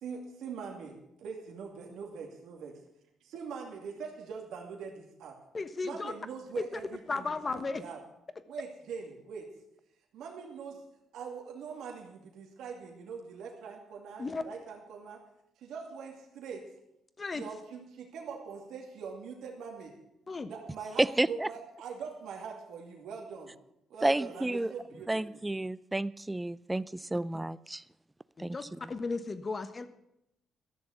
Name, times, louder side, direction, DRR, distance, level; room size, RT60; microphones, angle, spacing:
voice 1, 0.0-2.7 3.3-5.4 5.8-8.0 8.5-9.5 10.1-10.8 11.1-15.2 15.6-16.6 17.3-19.9 20.5-23.5 23.9-25.4, right 5 dB, 80° right, 2.4 m, -43 dB
voice 2, 5.5-6.1 6.6-6.7 7.1-7.8 14.2-14.4 17.2-17.4 20.3-20.5 28.4-29.9, left 3 dB, 30° left, 1.2 m, -35 dB
voice 3, 21.0-21.5 24.0-24.7 25.1-27.8 28.4-28.9, right 2 dB, 10° right, 0.4 m, -31 dB
13.5 x 6.9 x 9.4 m
cardioid pair, 90°, 0 cm